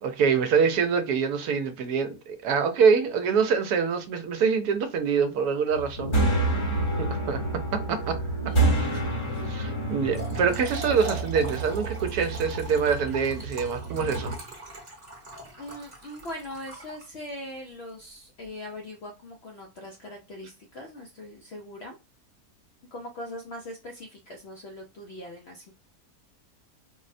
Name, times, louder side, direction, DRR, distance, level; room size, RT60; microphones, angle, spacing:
voice 1, 0.0-6.2 7.0-7.4 7.7-8.2 9.5-14.4, right 6 dB, 80° right, 1.1 m, -25 dB
sound 1, 5.7-14.3, right 2 dB, 30° left, 0.6 m, -28 dB
voice 2, 8.4-9.7 15.6-21.9 22.9-25.7, left 1 dB, 70° left, 0.6 m, -41 dB
Trickle dribble / Fill (with liquid), 9.9-17.4, right 1 dB, 30° right, 0.9 m, -41 dB
4.0 x 2.0 x 2.5 m
omnidirectional pair, 1.6 m